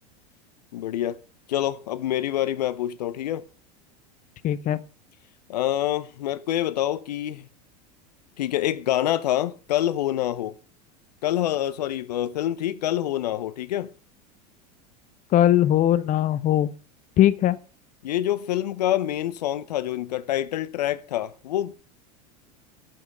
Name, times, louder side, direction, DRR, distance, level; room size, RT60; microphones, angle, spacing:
voice 1, 0.7-1.2 1.5-3.4 5.5-7.5 8.4-10.5 11.2-13.9 18.0-21.7, left 12 dB, 75° left, 0.8 m, -26 dB
voice 2, 4.4-4.8 15.3-16.7 17.2-17.6, left 12 dB, 40° left, 0.9 m, -20 dB
13.0 x 6.0 x 8.0 m
hypercardioid pair, 90°, 21 cm